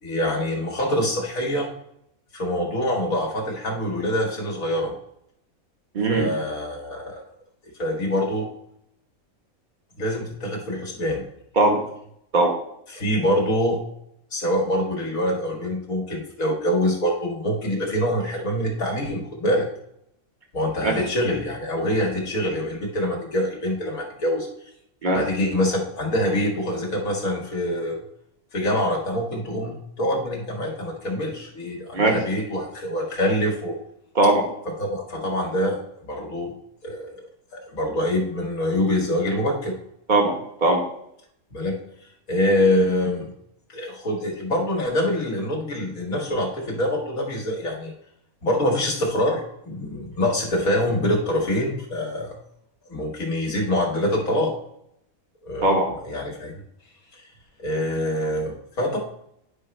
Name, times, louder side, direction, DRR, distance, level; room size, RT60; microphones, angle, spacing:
voice 1, 0.0-1.7 2.3-4.9 6.1-7.2 7.8-8.5 10.0-11.2 12.9-13.8 14.3-19.7 20.5-24.5 25.1-28.0 28.5-33.7 34.8-35.8 36.1-36.5 36.8-37.2 37.5-39.7 41.5-41.8 42.3-43.3 43.7-47.9 48.4-52.4 52.9-54.5 55.4-55.7 56.0-56.6 57.1-57.2 57.6-59.0, left 1 dB, 75° left, -1 dB, 2.4 m, -25 dB
voice 2, 5.9-6.3 11.5-11.8 12.3-12.5 20.8-20.9 25.0-25.2 31.9-32.1 34.1-34.5 40.1-40.8 55.6-55.9, right 2 dB, 35° right, 1 dB, 1.6 m, -19 dB
10.0 x 5.6 x 3.2 m, 0.75 s
omnidirectional pair, 1.5 m